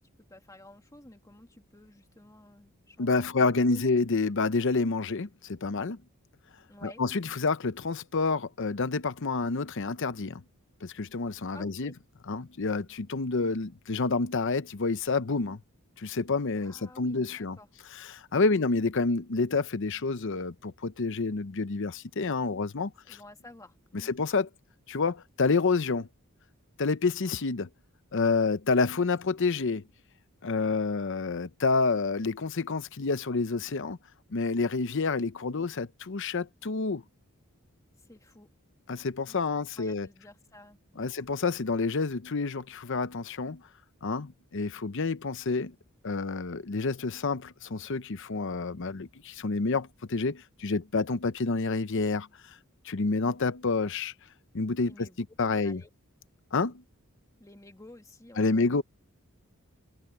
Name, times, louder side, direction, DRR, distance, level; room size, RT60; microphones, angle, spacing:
voice 1, 0.0-3.8 6.7-7.0 11.5-12.0 16.6-17.7 18.3-18.6 23.0-24.2 38.0-38.5 39.3-41.1 54.8-55.2 55.5-55.9 57.4-58.8, left 1 dB, 15° left, 2.2 m, -52 dB
voice 2, 3.0-6.0 6.8-10.4 10.8-11.9 12.3-15.6 16.0-17.6 18.0-23.2 23.9-24.5 24.9-26.1 26.8-27.7 28.1-29.8 30.4-34.0 34.3-37.0 38.9-40.1 41.0-43.6 44.0-45.7 46.0-52.6 52.8-54.1 54.5-55.1 55.4-55.8 56.5-56.8 58.4-58.8, left 4 dB, 60° left, 0.8 m, -28 dB
head